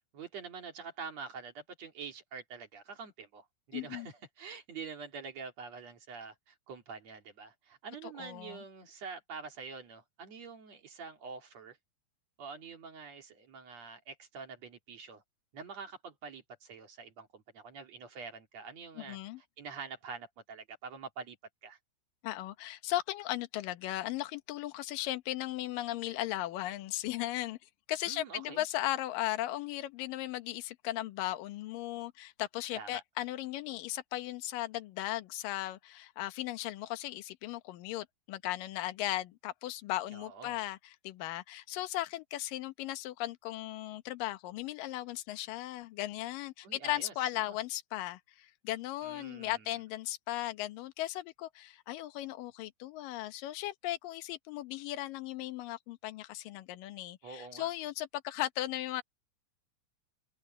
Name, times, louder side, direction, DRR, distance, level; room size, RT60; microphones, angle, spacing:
voice 1, 0.1-11.8 12.4-15.2 15.5-19.2 19.6-21.4 21.6-21.8 28.1-28.6 32.7-33.0 40.1-40.6 46.6-47.6 49.0-49.7 57.2-57.7, right 5 dB, 45° right, 3.1 m, -46 dB
voice 2, 3.7-4.1 8.0-8.6 19.0-19.4 22.2-27.6 27.9-59.0, left 15 dB, 65° left, 2.5 m, -37 dB
open air
omnidirectional pair, 4.8 m